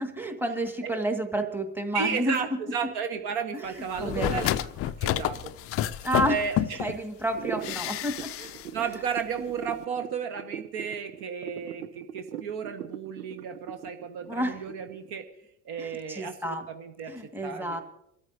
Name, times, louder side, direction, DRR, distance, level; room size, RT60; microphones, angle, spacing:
voice 1, 0.0-2.3 3.5-4.5 6.0-6.4 6.8-8.3 14.3-14.6 15.8-16.6 17.1-17.8, right 1 dB, 5° right, 6 dB, 1.6 m, -30 dB
voice 2, 1.9-4.5 4.8-5.5 6.2-6.9 8.4-15.2 15.6-17.1 17.4-17.8, right 6 dB, 50° right, 7 dB, 1.3 m, -33 dB
sound 1, 3.9-7.0 7.6-8.7 8.9-9.0, left 12 dB, 30° left, 0.4 m, -29 dB
sound 2, 7.3-15.1, right 10 dB, 85° right, 0.6 m, -40 dB
27.0 x 13.5 x 2.6 m, 0.83 s
figure-of-eight pair, 60°, 47 cm